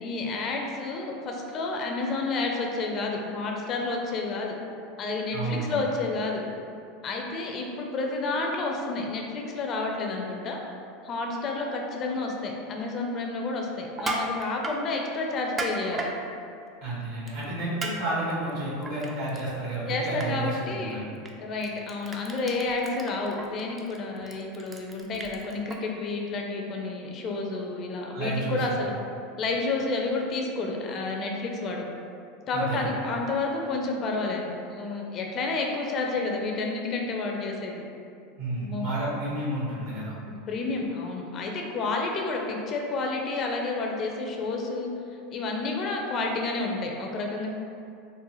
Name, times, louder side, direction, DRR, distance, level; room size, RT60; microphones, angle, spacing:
voice 1, 0.0-4.5 5.0-6.4 7.0-10.6 11.0-16.1 19.9-21.0 21.4-28.9 29.4-31.9 32.5-37.8 38.6-38.9 40.3-44.9 45.3-47.5, left 3 dB, 40° left, 1 dB, 0.5 m, -30 dB
voice 2, 5.3-5.8 16.8-21.0 28.1-28.8 32.5-32.8 38.4-40.1, right 2 dB, 65° right, -7 dB, 1.4 m, -31 dB
Crushing, 13.9-14.8 15.4-16.1 17.3-17.4 17.8-17.9 18.3-19.4 19.7-19.9 20.2-20.3 21.2-21.3 21.6-25.8, right 2 dB, 25° right, 0.4 m, -34 dB
3.9 x 2.1 x 3.0 m, 2.5 s
hypercardioid pair, 100°, 0 cm